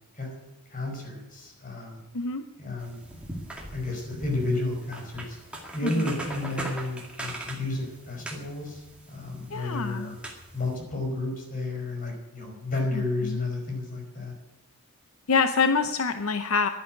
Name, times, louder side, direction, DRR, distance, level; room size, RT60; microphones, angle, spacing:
voice 1, 0.7-2.0 2.6-3.0 3.7-5.4 5.7-10.2 10.5-14.3, left 2 dB, 35° left, 1 dB, 5.1 m, -32 dB
sound 1, 2.8-10.8, right 1 dB, 5° right, 2.2 m, -40 dB
voice 2, 9.5-10.2 12.9-13.4 15.3-16.7, left 4 dB, 70° left, 9 dB, 0.7 m, -26 dB
11.5 x 10.5 x 9.8 m, 1.0 s
head